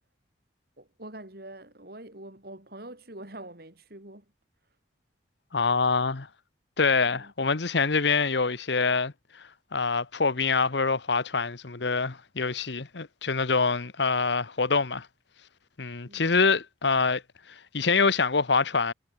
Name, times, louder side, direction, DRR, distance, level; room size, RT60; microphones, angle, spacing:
voice 1, 0.8-4.3 7.0-7.3 16.1-16.4, right 1 dB, 55° right, 3.5 m, -45 dB
voice 2, 5.5-6.3 6.8-9.1 9.7-15.1 15.8-17.2 17.5-18.9, left 4 dB, 65° left, 1.1 m, -25 dB
head